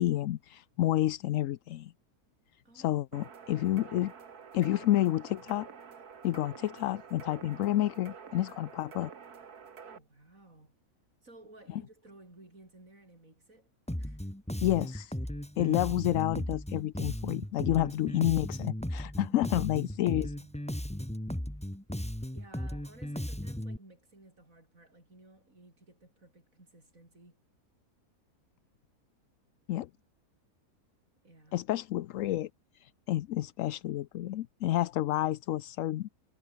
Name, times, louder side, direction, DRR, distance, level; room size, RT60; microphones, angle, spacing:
voice 1, 0.0-1.9 2.7-4.1 4.5-5.7 6.2-9.1 14.6-15.1 15.6-20.3 29.7-29.9 31.5-32.5 32.7-36.1, left 14 dB, 65° left, 0.9 m, -29 dB
voice 2, 2.7-3.0 7.4-7.7 9.8-10.8 11.2-13.7 14.0-14.3 19.3-20.5 22.3-27.4 31.2-31.7, right 2 dB, 60° right, 7.1 m, -56 dB
sound 1, 3.1-10.0, right 6 dB, 80° right, 2.3 m, -49 dB
Bass guitar, 13.9-23.8, equal, 5° left, 1.9 m, -36 dB
omnidirectional pair, 1.6 m